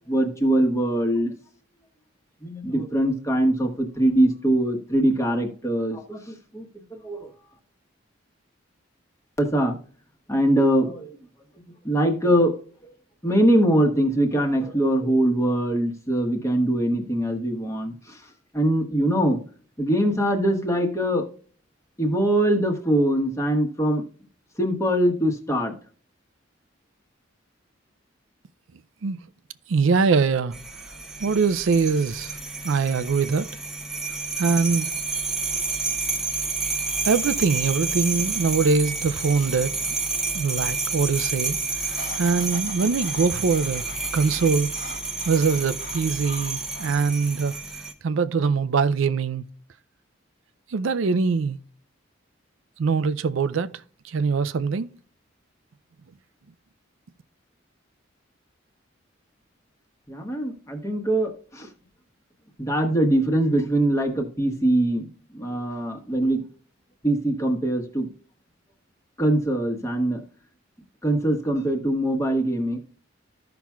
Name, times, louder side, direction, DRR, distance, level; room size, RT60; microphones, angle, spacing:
voice 1, 0.1-1.3 2.4-7.3 9.4-9.8 10.3-11.2 11.8-12.5 13.2-18.2 18.5-19.4 19.8-21.3 22.0-24.0 24.6-25.7 60.1-61.7 62.6-65.1 65.3-66.4 67.0-68.1 69.2-70.2 71.0-72.8, right 1 dB, 15° left, 1.2 m, -22 dB
voice 2, 29.7-30.5 31.2-32.4 32.6-33.5 34.4-34.9 37.0-40.0 40.3-41.6 41.8-43.8 44.1-44.7 45.3-47.6 48.0-49.4 50.7-51.6 52.8-53.7 54.0-54.9, right 5 dB, 80° right, 0.4 m, -23 dB
sound 1, 30.5-47.9, right 3 dB, 5° right, 0.8 m, -30 dB
sound 2, 41.8-47.5, left 4 dB, 75° left, 1.5 m, -43 dB
14.0 x 5.8 x 2.3 m
head